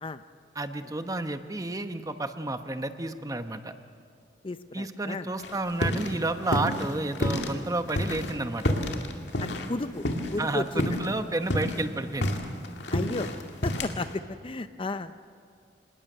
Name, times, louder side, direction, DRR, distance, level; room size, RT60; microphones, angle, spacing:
voice 1, 0.5-3.7 4.7-8.7 10.4-12.4, right 2 dB, 20° right, 8 dB, 1.0 m, -31 dB
voice 2, 4.4-5.3 9.4-10.0 10.3-11.0 12.9-13.3 13.6-15.1, left 2 dB, 30° left, 11 dB, 0.5 m, -33 dB
sound 1, 5.4-6.2 6.4-7.5 7.9-10.5 10.8-11.1 11.4-14.1, left 1 dB, 70° left, 2.1 m, -29 dB
26.5 x 20.0 x 6.7 m, 2.2 s
head